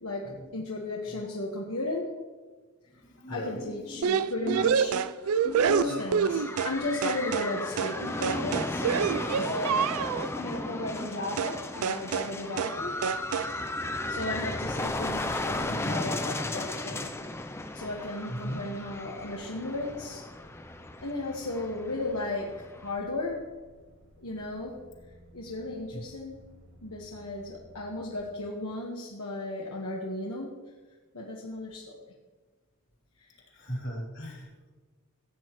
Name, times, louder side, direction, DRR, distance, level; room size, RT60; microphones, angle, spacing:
voice 1, 0.0-2.2 3.3-5.0 5.7-8.8 9.3-9.9 10.3-13.0 14.1-17.1 17.7-20.3 21.0-22.5 22.8-23.5 24.2-24.8 25.3-26.5 26.8-30.5 31.1-32.0 33.2-33.4, left 2 dB, 75° left, -3 dB, 1.4 m, -35 dB
voice 2, 3.0-4.1 4.4-4.7 4.9-5.0 5.4-5.7 18.3-18.6 25.9-26.0 33.5-34.7, equal, 55° left, -1 dB, 3.0 m, -38 dB
sound 1, 4.0-6.8 7.0-7.5 7.8-10.3 11.4-11.6 11.8-12.3 12.6-12.8 13.0-13.5, right 7 dB, 75° right, 0.4 m, -27 dB
sound 2, 5.2-22.9, left 2 dB, 10° left, 0.4 m, -35 dB
sound 3, 14.3-28.4, equal, 50° right, 1.7 m, -54 dB
16.0 x 8.7 x 3.1 m, 1.3 s
head